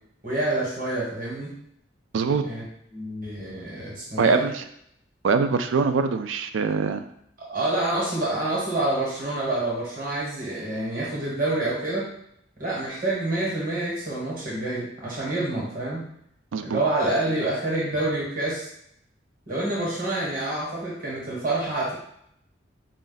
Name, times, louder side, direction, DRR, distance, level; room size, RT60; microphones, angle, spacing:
voice 1, 0.2-1.5 2.4-2.6 2.9-4.5 7.4-12.1 12.6-16.0 16.6-18.7 19.5-21.9, right 2 dB, 45° right, -5 dB, 1.3 m, -27 dB
voice 2, 2.1-2.4 4.2-4.6 5.2-7.0 16.5-16.8, right 5 dB, 80° right, 8 dB, 0.4 m, -23 dB
4.3 x 2.5 x 3.9 m, 0.72 s
head